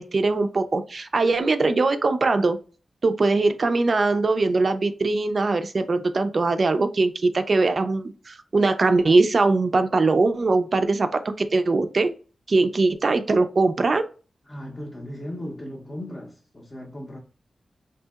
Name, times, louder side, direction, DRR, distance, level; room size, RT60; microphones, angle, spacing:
voice 1, 0.0-2.6 3.0-12.1 12.5-14.0, right 3 dB, 55° right, 0.3 m, -21 dB
voice 2, 14.5-17.2, equal, 30° left, 0.5 m, -36 dB
2.7 x 2.6 x 2.3 m
cardioid pair, 75°, 0 cm